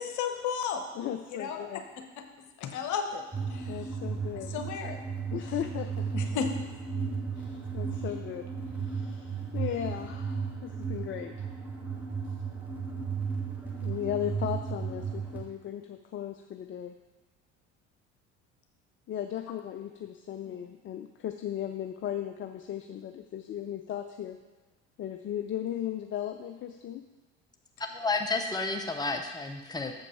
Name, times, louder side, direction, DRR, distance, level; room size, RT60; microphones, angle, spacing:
voice 1, 0.0-0.8 1.3-1.8 2.6-3.2 3.5-3.8 4.5-5.0 6.1-6.5 20.5-20.6, left 7 dB, 50° left, 5 dB, 1.0 m, -33 dB
voice 2, 0.9-1.8 3.7-4.6 5.3-6.1 7.3-11.3 13.8-16.9 19.1-24.4 25.0-27.1, left 10 dB, 35° left, 6 dB, 0.5 m, -36 dB
sound 1, 3.3-15.4, right 5 dB, 5° right, 2.0 m, -35 dB
voice 3, 27.9-29.9, left 3 dB, 10° left, 4 dB, 0.9 m, -31 dB
7.2 x 5.2 x 5.5 m, 1.3 s
figure-of-eight pair, 60°, 37 cm